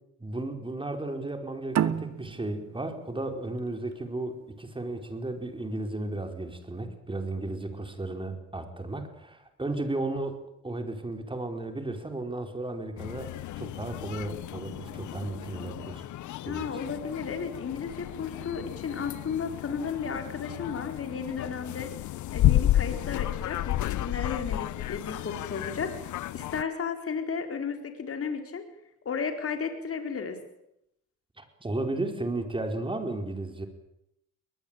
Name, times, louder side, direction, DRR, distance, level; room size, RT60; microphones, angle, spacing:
voice 1, 0.2-16.0 16.4-16.7 31.4-33.7, right 2 dB, 15° right, 6 dB, 4.5 m, -34 dB
sound 1, 1.7-4.9, right 9 dB, 60° right, 1.3 m, -32 dB
sound 2, 13.0-26.6, left 14 dB, 75° left, 0.9 m, -32 dB
voice 2, 16.4-21.9 22.3-28.6 29.0-30.4, left 6 dB, 50° left, 6 dB, 4.6 m, -34 dB
21.5 x 20.0 x 8.9 m, 0.79 s
cardioid pair, 90°, 30 cm